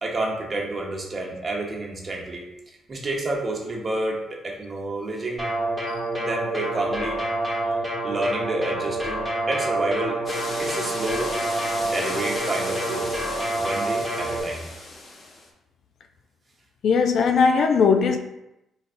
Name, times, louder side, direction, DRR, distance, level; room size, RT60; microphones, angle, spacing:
voice 1, 0.0-2.5 2.9-5.5 6.2-7.2 8.0-10.2 10.6-11.3 11.8-13.1 13.6-14.7, right 2 dB, 35° right, 0.9 m, -29 dB
sound 1, 5.4-14.4, right 1 dB, 5° right, 1.1 m, -27 dB
sound 2, 10.2-15.5, left 2 dB, 40° left, 0.7 m, -35 dB
voice 2, 16.8-18.2, left 5 dB, 65° left, 0.3 m, -19 dB
3.9 x 3.2 x 2.6 m
cardioid pair, 80°, 0 cm